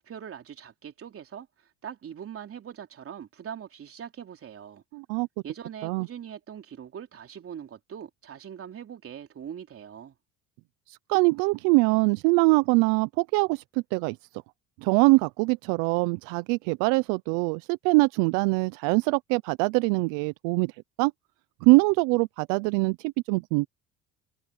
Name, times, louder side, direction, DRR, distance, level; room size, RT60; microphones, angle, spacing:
voice 1, 0.0-4.8 5.4-10.1, right 8 dB, 45° right, 3.4 m, -42 dB
voice 2, 4.9-5.3 5.8-6.1 10.9-14.2 14.8-20.7 21.0-21.1 21.6-23.7, right 26 dB, 75° right, 0.7 m, -23 dB
supercardioid pair, 80°, 32 cm